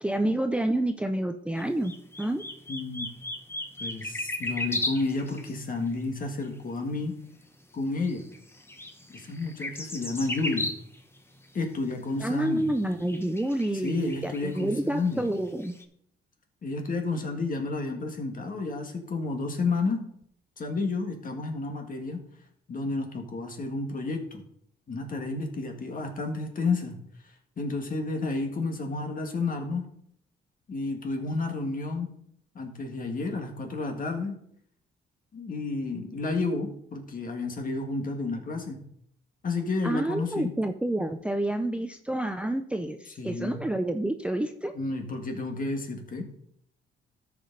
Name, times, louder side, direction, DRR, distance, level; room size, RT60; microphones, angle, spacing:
voice 1, 0.0-1.9 2.2-2.4 12.2-15.8 39.8-44.7, right 1 dB, 5° right, 6 dB, 0.6 m, -28 dB
sound 1, 1.6-6.0 6.4-6.5 7.1-7.2 8.1-11.2 11.4-11.5 12.3-15.8, left 1 dB, 10° left, 1.1 m, -36 dB
voice 2, 2.7-3.1 3.8-7.1 7.7-8.2 9.1-10.7 11.5-12.7 13.8-15.2 16.6-20.1 20.6-22.2 22.7-24.5 24.9-27.0 27.6-29.8 30.7-32.1 32.5-34.4 35.3-38.8 39.4-40.5 43.2-43.6 44.7-46.2, left 3 dB, 45° left, 4 dB, 1.9 m, -31 dB
13.0 x 5.2 x 4.0 m, 0.69 s
cardioid pair, 90°, 20 cm